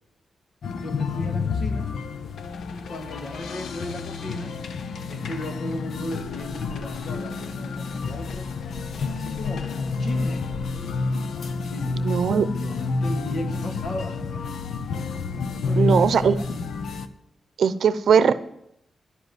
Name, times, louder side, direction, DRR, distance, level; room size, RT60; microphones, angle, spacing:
sound 1, 0.6-17.1, left 4 dB, 80° left, 0.9 m, -29 dB
voice 1, 0.8-1.9 2.7-4.5 5.1-8.5 9.1-10.4 11.7-14.5 15.5-15.9 16.3-16.7, left 1 dB, 55° left, 5 dB, 2.2 m, -36 dB
voice 2, 11.9-12.5 15.8-16.4 17.6-18.3, right 7 dB, 70° right, 14 dB, 0.7 m, -19 dB
11.5 x 8.1 x 9.3 m, 0.77 s
wide cardioid pair, 150°, 0 cm